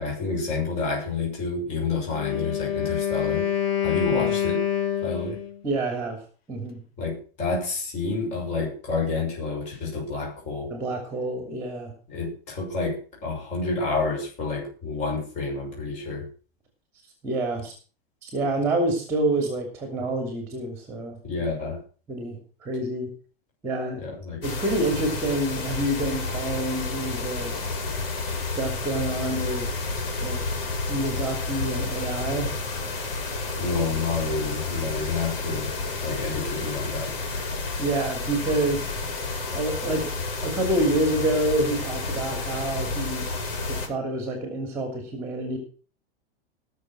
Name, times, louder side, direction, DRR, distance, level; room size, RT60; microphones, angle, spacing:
voice 1, 0.0-3.5 3.8-4.6 5.0-5.4 7.0-10.7 12.1-16.3 21.2-21.8 24.0-24.4 33.6-35.7 36.0-37.1, left 4 dB, 25° left, -1 dB, 6.2 m, -29 dB
Wind instrument woodwind instrument, 2.1-5.6, left 10 dB, 85° left, 2.7 m, -26 dB
voice 2, 5.6-6.2 6.5-6.8 10.7-11.9 17.2-17.7 18.2-21.2 22.1-23.1 23.6-24.0 24.4-27.6 28.4-29.7 30.2-30.4 30.9-32.5 33.3-33.4 37.8-38.9 39.5-40.1 40.4-43.3 43.6-45.6, right 1 dB, 10° right, 4 dB, 2.8 m, -27 dB
sound 1, 24.4-43.9, left 3 dB, 70° left, 5.7 m, -30 dB
20.0 x 6.8 x 6.0 m, 0.39 s
supercardioid pair, 180°, 30 cm